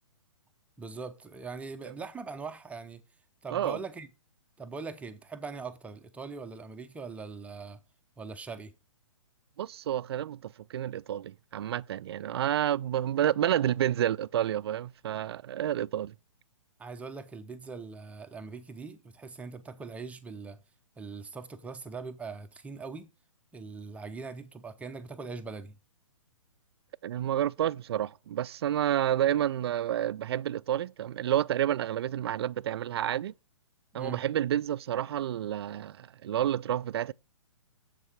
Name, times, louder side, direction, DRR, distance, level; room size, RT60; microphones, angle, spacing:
voice 1, 0.8-3.0 3.4-4.1 4.6-7.8 8.2-8.7 16.8-20.6 21.0-23.1 23.5-25.8 33.9-34.2, right 4 dB, 10° right, 0.6 m, -41 dB
voice 2, 9.6-16.1 27.0-33.3 33.9-37.1, right 11 dB, 50° right, 0.4 m, -29 dB
7.4 x 7.0 x 5.0 m
figure-of-eight pair, 130°, 17 cm